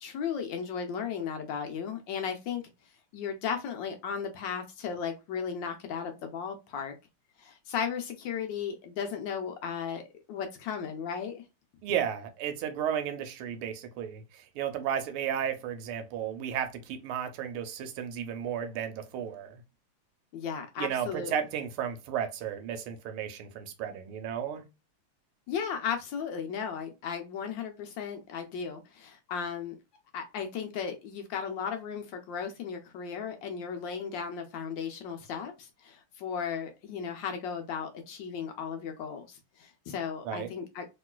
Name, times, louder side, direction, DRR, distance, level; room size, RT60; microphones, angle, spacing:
voice 1, 0.0-2.6 3.1-6.9 7.4-10.0 10.3-11.4 20.3-21.4 25.5-29.8 30.1-40.9, left 7 dB, 70° left, 1.1 m, -35 dB
voice 2, 11.8-19.6 20.8-24.6 40.2-40.5, right 9 dB, 85° right, 1.5 m, -33 dB
3.1 x 3.0 x 2.2 m
omnidirectional pair, 2.4 m